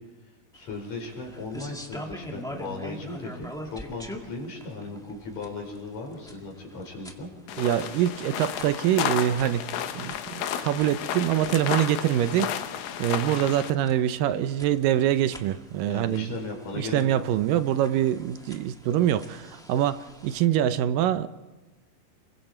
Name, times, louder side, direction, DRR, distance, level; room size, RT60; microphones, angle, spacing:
voice 1, 0.5-7.3 15.8-17.0, left 3 dB, 55° left, 1 dB, 6.0 m, -37 dB
sound 1, 0.5-20.4, equal, ahead, 0.9 m, -45 dB
sound 2, 7.5-13.7, left 9 dB, 80° left, 2.8 m, -32 dB
voice 2, 7.6-9.6 9.9-12.5 13.0-16.4 16.8-21.3, right 11 dB, 80° right, 11 dB, 2.4 m, -24 dB
30.0 x 22.0 x 4.4 m, 1.2 s
omnidirectional pair, 3.9 m